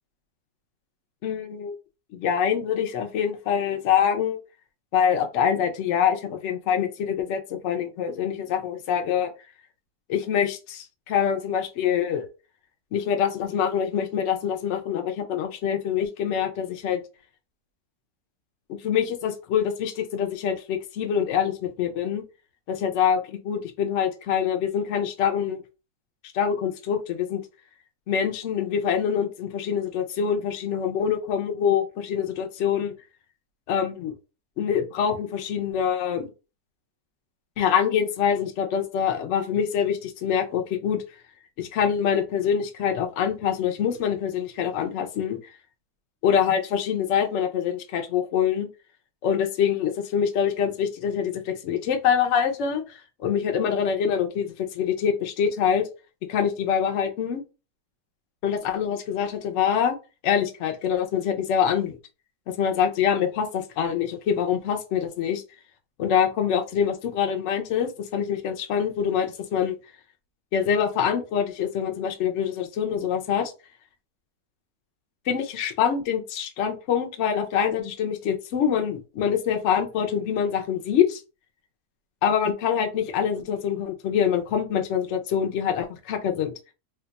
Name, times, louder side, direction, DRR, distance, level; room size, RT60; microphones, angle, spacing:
voice 1, 1.2-1.8 2.1-4.4 4.9-9.3 10.1-12.3 12.9-17.0 18.7-22.2 22.7-25.6 26.3-27.4 28.1-32.9 33.7-34.1 34.6-36.3 37.6-41.0 41.6-45.4 46.2-48.7 49.2-55.9 56.3-57.4 58.4-60.0 60.2-62.0 62.5-65.4 66.0-69.8 70.5-73.5 75.3-81.2 82.2-86.5, left 8 dB, 65° left, 4 dB, 0.7 m, -25 dB
2.9 x 2.3 x 3.9 m, 0.31 s
omnidirectional pair, 1.9 m